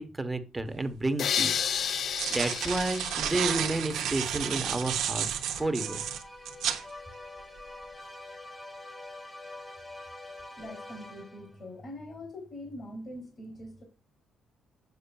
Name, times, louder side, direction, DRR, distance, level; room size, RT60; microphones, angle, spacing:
voice 1, 0.0-2.0 2.3-6.0, right 2 dB, 15° right, 0.8 m, -31 dB
sound 1, 0.8-0.9 1.8-6.8, right 9 dB, 90° right, 0.8 m, -32 dB
sound 2, 1.2-4.2, left 8 dB, 60° left, 0.3 m, -32 dB
sound 3, 4.8-11.6, left 2 dB, 15° left, 1.0 m, -46 dB
voice 2, 10.6-13.8, left 1 dB, 45° left, 2.4 m, -43 dB
6.8 x 6.5 x 2.2 m
cardioid pair, 90°, 0 cm